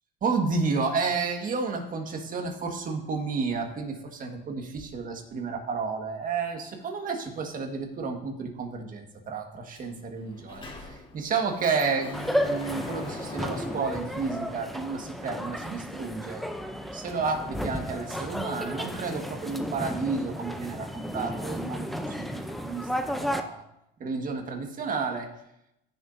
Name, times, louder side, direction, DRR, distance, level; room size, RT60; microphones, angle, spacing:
voice 1, 0.2-16.4 16.9-23.6 24.0-25.3, right 4 dB, 40° right, 3 dB, 1.7 m, -31 dB
Sliding door, 9.8-9.9 10.2-15.2, left 3 dB, 25° left, 1.7 m, -42 dB
sound 1, 12.1-23.4, equal, ahead, 0.6 m, -33 dB
16.0 x 7.0 x 2.7 m, 0.82 s
cardioid pair, 120°, 21 cm